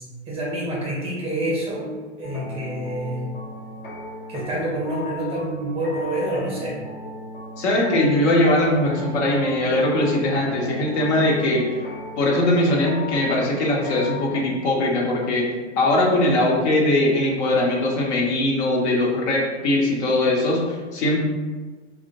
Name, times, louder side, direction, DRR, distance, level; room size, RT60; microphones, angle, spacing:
voice 1, 0.3-3.3 4.3-6.8, right 1 dB, 15° right, -4 dB, 0.6 m, -27 dB
sound 1, 2.2-14.4, left 2 dB, 25° left, 0.4 m, -37 dB
voice 2, 7.6-11.7 12.2-15.4 15.8-21.2, left 1 dB, 65° left, -2 dB, 0.8 m, -20 dB
2.4 x 2.1 x 2.7 m, 1.4 s
hypercardioid pair, 120°, 36 cm